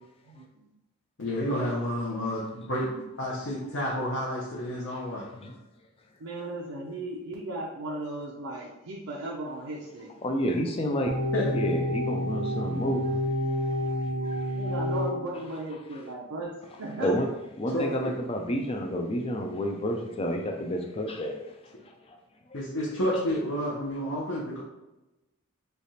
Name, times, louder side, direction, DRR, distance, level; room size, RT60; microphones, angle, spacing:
voice 1, 0.3-0.7 2.8-3.0 6.2-10.1 14.5-17.2, right 2 dB, 80° right, -5 dB, 0.6 m, -36 dB
voice 2, 1.2-2.9 3.2-5.3 11.3-11.5 17.7-18.2 22.5-24.6, equal, 60° left, -6 dB, 0.8 m, -30 dB
voice 3, 10.2-11.1 11.5-13.2 13.9-14.0 14.2-14.4 17.0-17.3 17.6-21.4 21.6-21.9 22.5-22.6, equal, 25° left, 2 dB, 0.4 m, -30 dB
sound 1, 11.1-15.1, left 1 dB, 30° right, 0.6 m, -29 dB
3.3 x 2.4 x 4.1 m, 0.99 s
head